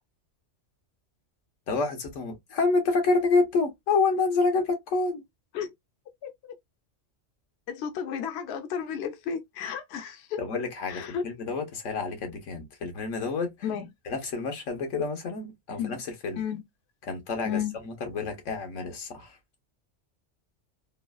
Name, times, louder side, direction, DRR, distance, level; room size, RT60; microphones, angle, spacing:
voice 1, 1.7-5.2 10.4-13.5 14.0-16.4 17.0-19.3, left 3 dB, 85° left, 1.2 m, -28 dB
voice 2, 7.7-10.4 10.9-11.2 13.6-13.9 15.8-16.0 16.4-16.6 17.5-17.7, left 8 dB, 65° left, 0.8 m, -32 dB
3.1 x 2.3 x 2.2 m
omnidirectional pair, 1.3 m